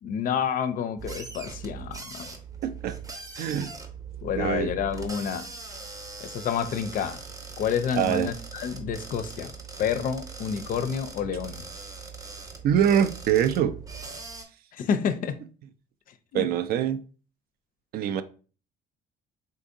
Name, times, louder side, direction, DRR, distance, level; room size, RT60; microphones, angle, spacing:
voice 1, 0.0-2.3 4.2-5.5 6.2-7.2 7.6-9.5 9.8-11.7 14.7-15.4 16.3-16.5, left 7 dB, 55° left, 0.4 m, -29 dB
sound 1, 1.0-14.4, right 5 dB, 20° right, 0.7 m, -41 dB
voice 2, 2.6-2.9 3.4-3.7 4.4-4.7 7.9-8.3 12.6-13.8 16.3-17.0 17.9-18.2, right 9 dB, 65° right, 0.4 m, -24 dB
3.7 x 2.6 x 2.6 m
cardioid pair, 110°, 17 cm